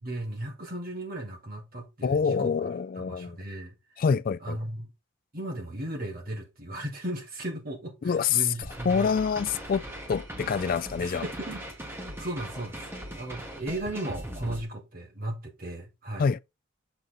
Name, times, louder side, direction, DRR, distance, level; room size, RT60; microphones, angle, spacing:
voice 1, 0.0-2.5 3.0-3.7 4.4-4.9 5.3-9.1 11.0-11.6 11.9-12.8 13.1-16.3, right 1 dB, 45° right, 2.8 m, -36 dB
voice 2, 2.0-3.4 4.0-4.6 8.0-8.4 8.9-9.8 10.1-11.2 16.2-16.4, left 6 dB, 45° left, 0.3 m, -26 dB
sound 1, 8.6-14.6, equal, 10° right, 1.6 m, -39 dB
8.0 x 5.4 x 3.9 m
head